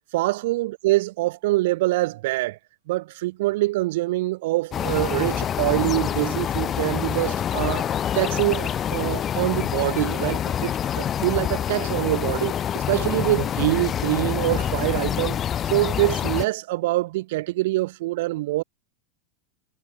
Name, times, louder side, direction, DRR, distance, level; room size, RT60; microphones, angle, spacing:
voice 1, 0.1-2.6 2.9-7.8 8.1-15.4 15.6-18.6, right 19 dB, 55° right, 2.8 m, -25 dB
sound 1, 4.7-16.4, left 9 dB, 30° left, 2.3 m, -26 dB
figure-of-eight pair, 85°, 0 cm